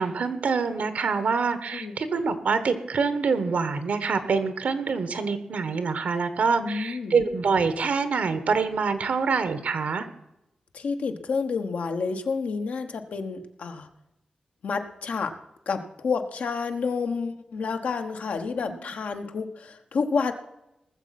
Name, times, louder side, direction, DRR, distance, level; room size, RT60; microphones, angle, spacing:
voice 1, 0.0-10.1 18.6-18.8, right 5 dB, 80° right, 11 dB, 1.3 m, -25 dB
voice 2, 6.6-7.2 10.7-13.9 14.6-15.4 15.7-20.3, left 5 dB, 80° left, 6 dB, 1.2 m, -29 dB
19.0 x 7.4 x 5.9 m, 0.89 s
wide cardioid pair, 90°, 2 cm